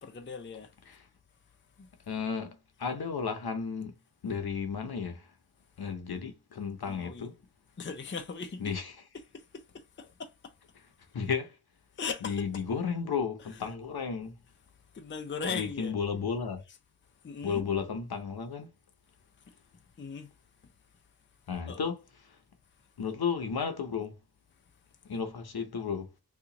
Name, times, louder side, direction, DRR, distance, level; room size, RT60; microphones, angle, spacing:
voice 1, 0.0-0.7 1.8-1.9 6.8-7.3 7.8-8.7 9.1-10.5 12.0-12.5 13.5-13.7 14.9-16.0 17.2-17.6 20.0-20.3 21.7-21.9, left 5 dB, 30° left, 0.5 m, -39 dB
voice 2, 2.1-3.9 4.2-5.3 5.8-7.3 8.6-8.9 11.1-11.6 12.2-14.4 15.5-16.6 17.4-18.7 21.5-22.4 23.0-24.2 25.0-26.1, left 6 dB, 65° left, 0.8 m, -33 dB
2.9 x 2.5 x 3.7 m
wide cardioid pair, 70°, 40 cm